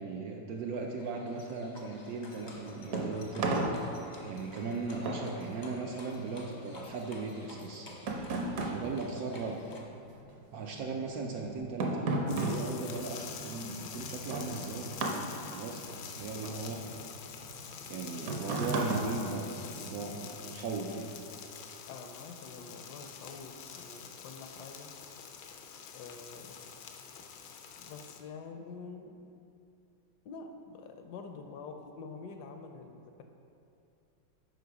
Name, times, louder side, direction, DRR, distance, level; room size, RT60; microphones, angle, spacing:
voice 1, 0.0-3.5 4.3-7.9 8.7-9.6 10.5-14.9 15.5-17.1 17.9-19.5 19.7-21.2, right 4 dB, 80° right, 2 dB, 0.8 m, -38 dB
Livestock farm animals working animals, 0.7-9.8, left 1 dB, 45° left, 0.5 m, -50 dB
sound 1, 2.4-10.1 10.3-20.0, right 2 dB, 60° right, 1.0 m, -36 dB
sound 2, 12.3-28.2, left 7 dB, 90° left, 1.4 m, -46 dB
voice 2, 21.9-24.9 25.9-26.5 27.8-29.2 30.2-33.2, left 4 dB, 70° left, 5 dB, 1.0 m, -47 dB
7.9 x 5.4 x 4.7 m, 2.7 s
omnidirectional pair, 2.1 m